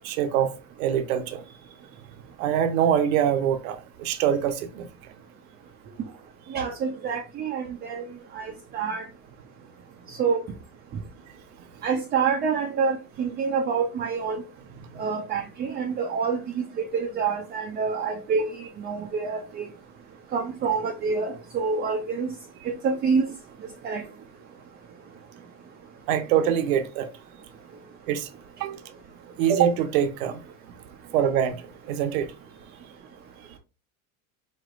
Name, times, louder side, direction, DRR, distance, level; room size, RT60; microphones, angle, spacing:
voice 1, 0.0-0.5 0.8-1.4 2.4-4.9 26.1-27.1 28.1-28.3 28.6-28.8 29.4-30.4 31.1-31.5 31.9-32.3, right 9 dB, 85° right, 0.8 m, -24 dB
voice 2, 6.5-8.0 8.3-9.0 10.2-10.4 11.8-14.4 15.0-16.6 16.9-19.6 20.3-22.3 22.7-23.3 23.8-24.0, right 5 dB, 25° right, 0.5 m, -27 dB
4.1 x 3.2 x 2.4 m
supercardioid pair, 130°, 41 cm